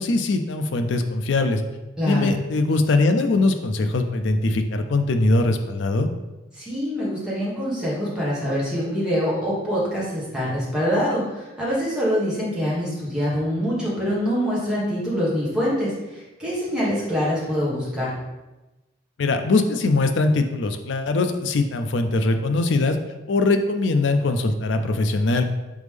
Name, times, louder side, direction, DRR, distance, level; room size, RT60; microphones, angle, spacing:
voice 1, 0.0-1.6 2.0-6.1 19.2-23.0 23.3-25.4, left 2 dB, 65° left, 7 dB, 0.4 m, -21 dB
voice 2, 2.0-2.3 6.5-18.1, equal, 5° right, -8 dB, 1.3 m, -25 dB
4.0 x 3.6 x 3.3 m, 1.1 s
head